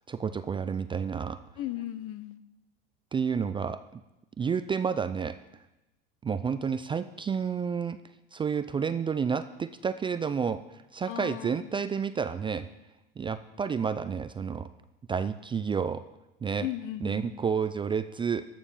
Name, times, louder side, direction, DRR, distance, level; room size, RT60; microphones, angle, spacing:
voice 1, 0.1-1.4 3.1-4.0 4.4-5.4 6.2-8.0 8.3-10.6 10.9-12.7 13.2-14.7 15.1-16.0 16.4-16.7 17.0-18.5, right 6 dB, 15° right, 12 dB, 0.4 m, -30 dB
voice 2, 1.6-2.4 11.1-11.7 16.6-17.4, left 13 dB, 50° left, 14 dB, 0.8 m, -36 dB
13.5 x 6.9 x 5.5 m, 0.97 s
supercardioid pair, 105°, 29 cm